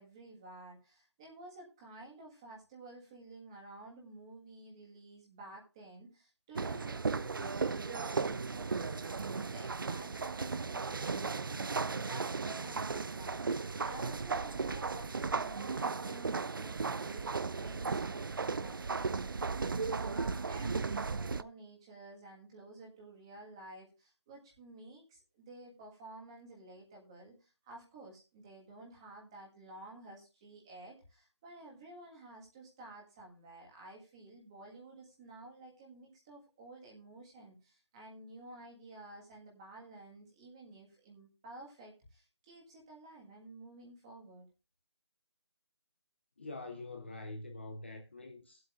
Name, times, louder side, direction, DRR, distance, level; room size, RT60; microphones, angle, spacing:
voice 1, 0.0-13.5 13.8-44.5, right 2 dB, 10° right, 1.5 m, -52 dB
sound 1, 6.5-21.4, right 4 dB, 50° right, 0.4 m, -36 dB
voice 2, 46.4-48.6, left 2 dB, 25° left, 0.7 m, -45 dB
19.5 x 7.8 x 2.4 m
hypercardioid pair, 180°, 14 cm